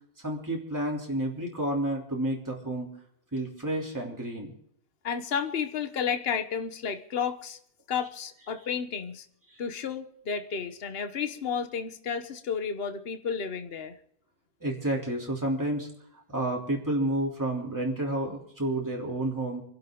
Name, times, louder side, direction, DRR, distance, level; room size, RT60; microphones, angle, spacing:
voice 1, 0.2-2.9 3.3-4.5 9.5-9.6 14.6-15.9 16.3-19.6, right 1 dB, 15° right, -2 dB, 3.3 m, -30 dB
voice 2, 5.0-7.6 7.9-9.3 9.6-14.0, left 6 dB, 55° left, 9 dB, 1.3 m, -32 dB
26.5 x 12.0 x 3.8 m, 0.66 s
omnidirectional pair, 1.3 m